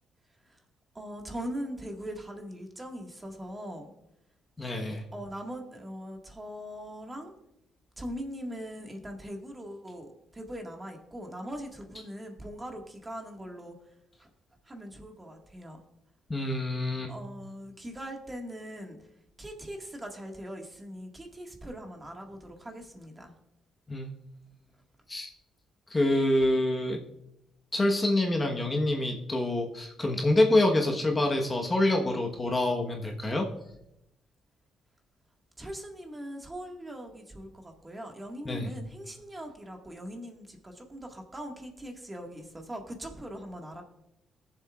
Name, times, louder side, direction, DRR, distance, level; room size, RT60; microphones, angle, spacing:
voice 1, 0.9-3.9 5.1-7.3 8.0-13.8 14.2-14.3 14.6-15.8 17.1-19.1 19.4-23.3 35.6-43.8, equal, 20° right, 2 dB, 1.8 m, -41 dB
voice 2, 4.6-5.0 16.3-17.1 23.9-24.1 25.1-25.3 25.9-27.0 27.7-33.5 38.4-38.7, left 1 dB, 25° left, 2 dB, 1.2 m, -26 dB
20.5 x 7.3 x 2.5 m, 0.84 s
cardioid pair, 90°, 0 cm